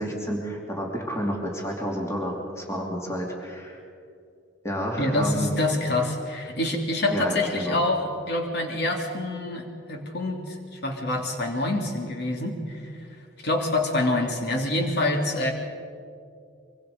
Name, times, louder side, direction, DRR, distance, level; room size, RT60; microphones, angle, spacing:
voice 1, 0.0-3.8 4.6-5.5 7.1-7.8, equal, 15° left, -1 dB, 2.9 m, -30 dB
voice 2, 5.0-12.9 13.4-15.5, left 2 dB, 65° left, 2 dB, 3.0 m, -26 dB
24.5 x 24.5 x 5.3 m, 2.4 s
head